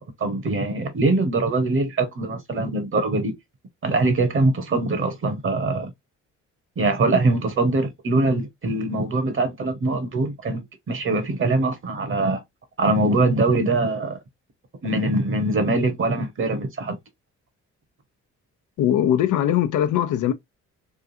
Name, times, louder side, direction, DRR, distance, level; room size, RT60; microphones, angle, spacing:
voice 1, 0.0-3.3 3.8-5.9 6.8-12.4 12.8-14.2 14.8-17.0, right 2 dB, 40° right, 1.3 m, -23 dB
voice 2, 18.8-20.3, left 10 dB, 80° left, 0.7 m, -20 dB
3.6 x 2.3 x 2.7 m
cardioid pair, 90°, 30 cm